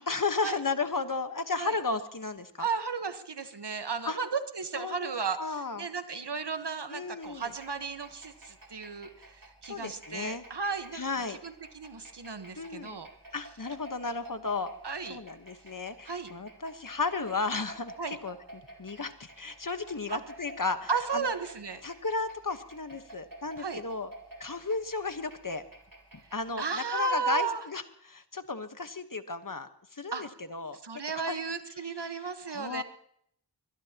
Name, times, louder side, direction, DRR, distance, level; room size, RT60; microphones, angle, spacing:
voice 1, 0.0-2.7 4.0-4.2 4.8-5.1 5.4-5.9 6.9-7.5 9.7-10.4 10.9-11.4 12.6-13.0 13.3-14.7 15.1-21.3 21.8-24.1 24.4-25.6 26.3-31.4 32.5-32.8, left 4 dB, 50° left, 9 dB, 1.3 m, -34 dB
voice 2, 2.6-11.0 11.3-13.1 14.8-15.2 16.0-16.3 18.0-18.2 20.1-20.2 20.9-21.8 23.6-23.8 26.6-27.6 30.1-30.3 30.8-32.8, right 5 dB, 70° right, 9 dB, 1.4 m, -34 dB
sound 1, 7.2-26.5, right 2 dB, 50° right, 3.6 m, -51 dB
22.5 x 20.5 x 3.0 m, 0.67 s
wide cardioid pair, 45°, 42 cm